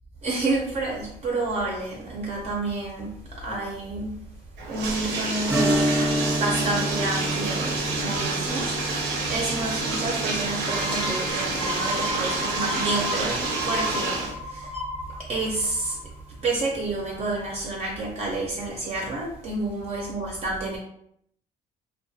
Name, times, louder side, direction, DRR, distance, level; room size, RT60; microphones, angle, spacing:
voice 1, 0.2-4.2 4.7-5.9 6.4-14.7 15.2-16.0 16.4-20.8, right 2 dB, 40° right, -2 dB, 0.5 m, -29 dB
Bathtub (filling or washing), 4.6-14.3, right 3 dB, 90° right, 0.6 m, -28 dB
Strum, 5.5-14.7 15.0-15.1 17.6-17.8 18.3-18.4, equal, 10° right, 0.8 m, -31 dB
sound 1, 10.7-16.2 16.6-16.7, left 1 dB, 35° left, 0.5 m, -33 dB
2.3 x 2.2 x 2.5 m, 0.72 s
cardioid pair, 110°, 17 cm